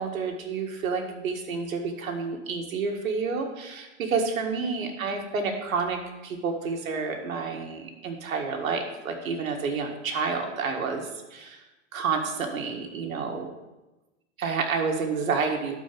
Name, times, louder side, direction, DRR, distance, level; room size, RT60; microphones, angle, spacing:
voice 1, 0.0-11.6 11.9-13.5 14.4-15.8, right 5 dB, 90° right, 3 dB, 1.8 m, -29 dB
12.0 x 4.6 x 5.9 m, 1.0 s
hypercardioid pair, 130°, 40 cm